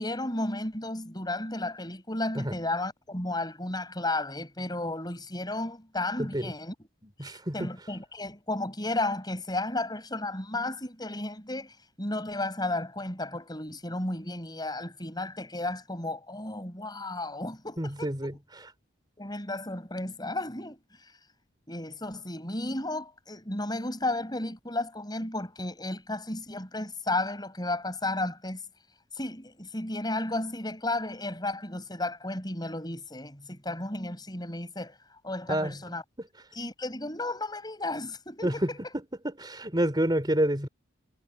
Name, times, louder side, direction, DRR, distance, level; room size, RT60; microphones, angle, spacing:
voice 1, 0.0-6.8 7.2-18.1 19.2-21.1 21.7-28.6 29.2-35.0 35.2-36.0 36.5-38.6, left 2 dB, 20° left, 6.8 m, -33 dB
voice 2, 6.2-6.5 7.0-7.7 17.8-18.7 35.5-35.8 36.2-36.3 38.4-38.7 39.2-40.7, right 1 dB, 20° right, 3.5 m, -29 dB
head